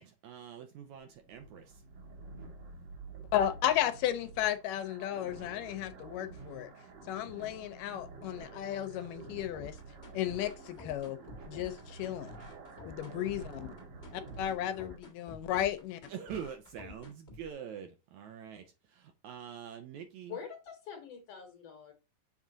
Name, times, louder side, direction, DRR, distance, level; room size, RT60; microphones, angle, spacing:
voice 1, 0.0-1.8 16.1-20.4, right 8 dB, 75° right, 1.8 m, -45 dB
sound 1, 0.9-15.0, right 3 dB, 55° right, 1.8 m, -49 dB
voice 2, 3.3-6.7 7.1-9.8 10.1-11.2 11.5-12.3 12.9-13.7 14.1-16.0, left 11 dB, 80° left, 2.1 m, -34 dB
sound 2, 9.5-17.5, left 2 dB, 40° left, 0.9 m, -50 dB
voice 3, 20.3-21.9, left 7 dB, 60° left, 1.7 m, -45 dB
7.4 x 3.7 x 3.9 m
omnidirectional pair, 4.0 m